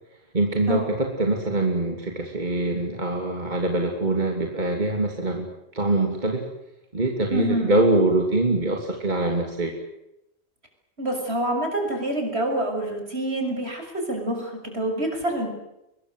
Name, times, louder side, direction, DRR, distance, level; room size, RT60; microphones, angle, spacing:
voice 1, 0.3-6.4 6.9-9.7, right 2 dB, 45° right, 2 dB, 3.1 m, -24 dB
voice 2, 7.3-7.7 11.0-15.5, right 1 dB, 70° right, 4 dB, 6.8 m, -27 dB
24.0 x 22.0 x 7.9 m, 0.88 s
omnidirectional pair, 1.1 m